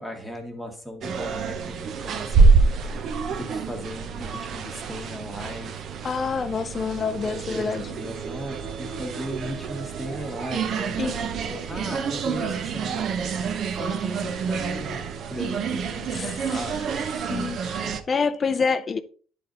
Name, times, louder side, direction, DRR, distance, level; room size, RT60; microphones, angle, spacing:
voice 1, 0.0-3.0 3.3-5.9 7.5-15.0 15.3-16.9 17.2-18.0, equal, ahead, 1.5 m, -37 dB
sound 1, 1.0-18.0, right 5 dB, 40° right, 0.7 m, -27 dB
voice 2, 6.0-7.9 11.0-11.2 15.7-15.8 16.1-16.6 17.2-19.0, left 5 dB, 25° left, 0.5 m, -27 dB
11.5 x 4.2 x 3.9 m
cardioid pair, 175°, 0 cm